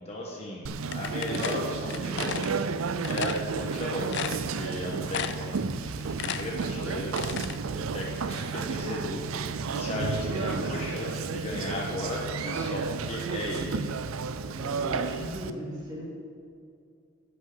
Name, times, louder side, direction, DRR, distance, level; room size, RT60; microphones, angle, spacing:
voice 1, 0.0-2.7 3.0-5.4 6.1-7.1 7.7-9.2 9.7-13.7, left 1 dB, 30° left, -2 dB, 1.2 m, -35 dB
Conversation, 0.7-15.5, right 5 dB, 80° right, 0.5 m, -32 dB
sound 1, 0.9-2.5 3.0-3.4 3.8-3.9 4.1-4.8 5.1-5.5 5.9-7.6, left 8 dB, 55° left, 0.5 m, -34 dB
voice 2, 14.5-16.0, equal, 20° right, -6 dB, 3.1 m, -37 dB
11.0 x 5.4 x 8.2 m, 2.3 s
head